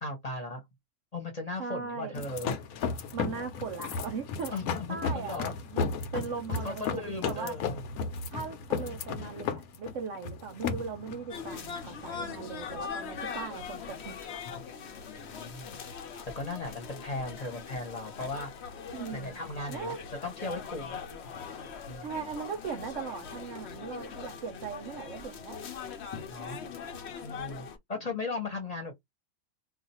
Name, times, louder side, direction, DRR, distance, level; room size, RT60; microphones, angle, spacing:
voice 1, 0.0-0.6 1.1-2.5 4.5-5.5 6.6-7.7 14.9-15.7 16.3-18.5 19.1-19.9 20.2-21.0 21.9-22.3 26.3-26.6 27.2-28.9, left 2 dB, 30° left, 0.9 m, -37 dB
voice 2, 1.6-2.2 3.1-4.5 4.9-5.9 6.1-7.5 8.3-14.2 18.9-19.4 19.7-20.0 22.0-25.7, right 5 dB, 65° right, 0.9 m, -39 dB
sound 1, 2.2-12.8, left 5 dB, 75° left, 1.1 m, -35 dB
sound 2, 11.3-27.8, left 6 dB, 55° left, 0.8 m, -41 dB
2.5 x 2.4 x 4.1 m
omnidirectional pair, 1.6 m